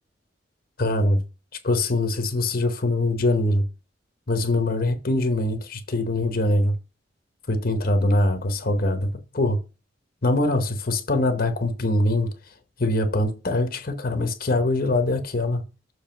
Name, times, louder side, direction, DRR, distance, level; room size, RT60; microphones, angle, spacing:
voice 1, 0.8-1.2 1.6-3.6 4.3-6.7 7.5-9.6 10.2-12.3 12.8-15.6, left 1 dB, 50° left, 0.9 m, -23 dB
7.0 x 3.3 x 5.7 m
head